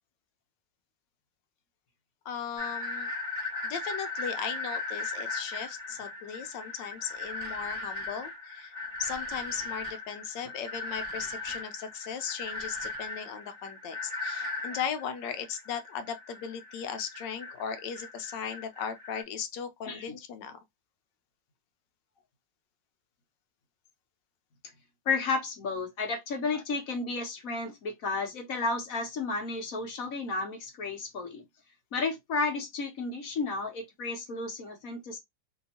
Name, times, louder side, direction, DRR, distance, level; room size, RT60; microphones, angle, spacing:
voice 1, 2.2-3.1 3.6-8.7 9.0-20.6 26.5-26.6, left 7 dB, 75° left, 1.3 m, -37 dB
sound 1, 2.6-19.2, left 2 dB, 10° right, 1.5 m, -38 dB
voice 2, 25.1-31.4 31.9-35.2, left 3 dB, 55° left, 1.2 m, -32 dB
3.5 x 2.8 x 2.7 m
omnidirectional pair, 2.0 m